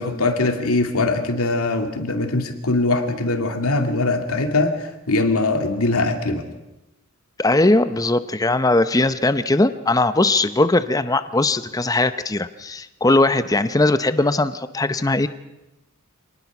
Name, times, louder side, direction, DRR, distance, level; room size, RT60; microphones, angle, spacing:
voice 1, 0.0-6.4, left 2 dB, 80° left, 6 dB, 2.2 m, -21 dB
voice 2, 7.4-15.3, left 2 dB, 15° left, 12 dB, 0.6 m, -19 dB
25.5 x 19.0 x 6.0 m, 0.96 s
head